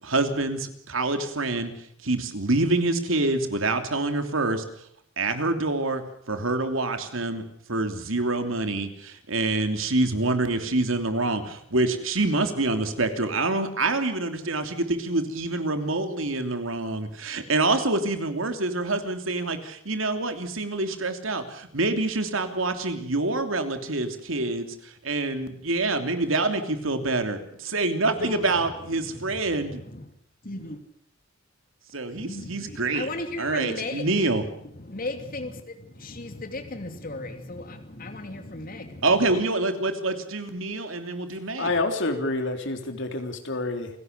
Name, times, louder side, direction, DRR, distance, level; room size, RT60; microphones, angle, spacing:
voice 1, 0.0-1.7 2.0-4.6 5.2-6.0 6.3-7.4 7.7-29.8 31.9-33.1 33.4-34.4 39.0-41.7, right 2 dB, 75° right, 3.0 m, -26 dB
voice 2, 28.1-28.7 29.0-29.4 29.7-30.1 30.4-30.8 32.1-34.2 34.7-39.4, left 2 dB, 45° left, 2.8 m, -36 dB
voice 3, 41.6-43.9, left 2 dB, 65° left, 3.5 m, -28 dB
28.5 x 16.5 x 6.8 m
head